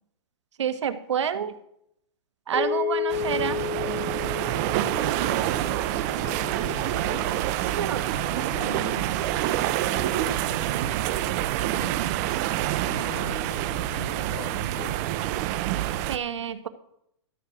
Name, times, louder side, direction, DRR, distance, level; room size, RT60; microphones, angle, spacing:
voice 1, 0.6-1.5 2.5-3.6 7.7-8.0 16.1-16.7, right 8 dB, 80° right, 11 dB, 1.4 m, -28 dB
sound 1, 2.5-7.0, left 7 dB, 5° left, 5.8 m, -32 dB
sound 2, 3.1-16.2, right 14 dB, 35° right, 0.8 m, -27 dB
voice 2, 4.8-5.2 6.1-7.4 8.1-12.3 12.8-15.0, left 4 dB, 65° left, 2 dB, 4.5 m, -40 dB
sound 3, 5.1-11.4, right 4 dB, 25° left, 3.1 m, -44 dB
13.5 x 7.9 x 6.0 m, 0.73 s
hypercardioid pair, 150°, 15 cm